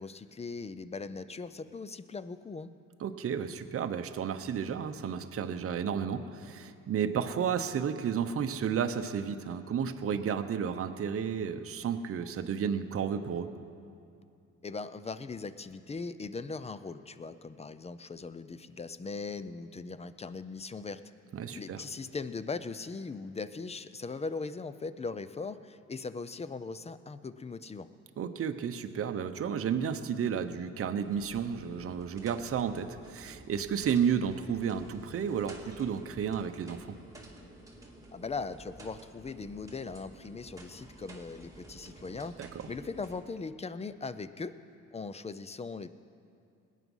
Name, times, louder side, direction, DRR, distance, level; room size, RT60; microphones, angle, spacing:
voice 1, 0.0-2.7 14.6-21.0 21.5-27.9 38.1-42.4 42.7-44.6 44.9-45.9, left 4 dB, 20° left, 14 dB, 0.5 m, -39 dB
voice 2, 3.0-13.5 21.3-21.8 28.2-36.9 42.4-42.6, right 7 dB, 50° right, 8 dB, 0.8 m, -32 dB
sound 1, 31.0-43.2, right 2 dB, 10° right, 2.2 m, -51 dB
19.5 x 9.2 x 5.5 m, 2.5 s
cardioid pair, 90°, 30 cm